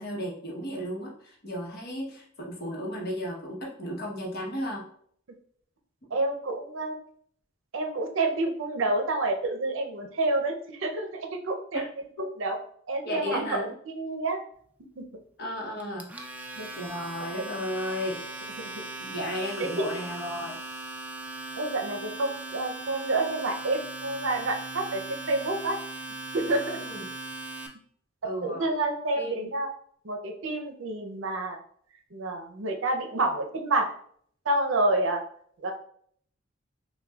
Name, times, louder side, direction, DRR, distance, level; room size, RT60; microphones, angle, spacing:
voice 1, 0.0-4.9 11.7-11.9 13.0-13.7 15.4-16.1 16.7-18.2 19.0-20.6 26.7-27.1 28.2-28.7 29.2-29.5, left 1 dB, 55° left, -1 dB, 1.0 m, -34 dB
voice 2, 6.1-7.0 7.7-11.8 12.2-12.6 12.9-13.7 13.9-14.4 15.0-15.1 16.6-16.7 17.2-17.3 19.6-19.9 21.6-25.8 26.3-26.8 28.4-29.7 30.0-31.6 32.1-33.9 34.5-35.2 35.6-35.7, right 2 dB, 70° right, 4 dB, 0.6 m, -28 dB
Domestic sounds home sounds, 15.8-27.7, right 2 dB, 10° right, 0.3 m, -39 dB
5.7 x 2.2 x 2.3 m, 0.62 s
head